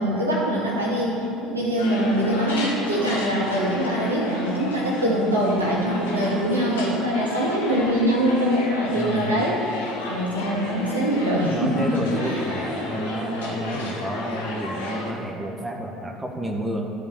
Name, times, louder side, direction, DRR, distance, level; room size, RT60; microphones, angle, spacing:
voice 1, 0.0-12.8, equal, 85° right, -6 dB, 2.2 m, -23 dB
sound 1, 1.8-15.1, left 2 dB, 75° left, 1.7 m, -33 dB
voice 2, 9.0-9.5 11.5-16.9, right 1 dB, 10° right, 1 dB, 1.3 m, -30 dB
12.5 x 5.3 x 6.5 m, 2.7 s
figure-of-eight pair, 65°, 0 cm